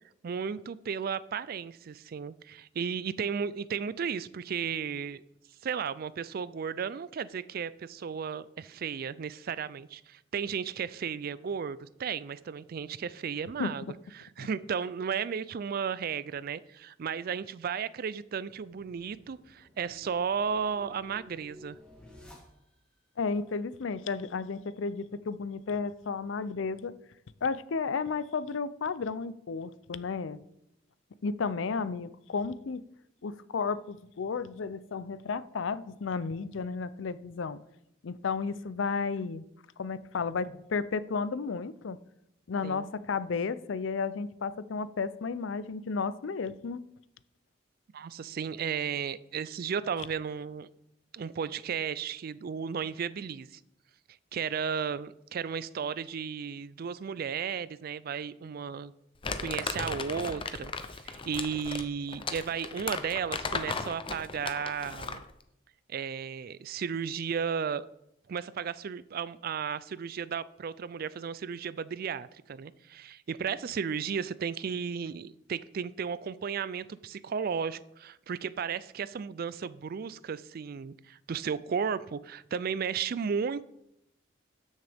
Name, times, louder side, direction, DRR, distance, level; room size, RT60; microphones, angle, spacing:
voice 1, 0.2-5.2 5.6-13.8 14.1-21.8 42.6-42.9 47.9-50.7 51.1-53.5 54.3-58.9 59.4-65.2 65.9-67.9 68.3-83.6, right 6 dB, 50° right, 0.4 m, -34 dB
sound 1, 18.6-23.0, left 1 dB, 5° left, 1.8 m, -54 dB
voice 2, 23.2-26.9 27.4-30.4 31.2-32.8 33.2-37.6 38.0-39.4 39.8-42.0 42.5-46.8, left 5 dB, 80° left, 0.5 m, -33 dB
Crumpling crinkling, 59.2-65.3, left 4 dB, 25° left, 0.6 m, -36 dB
13.0 x 6.5 x 3.5 m
head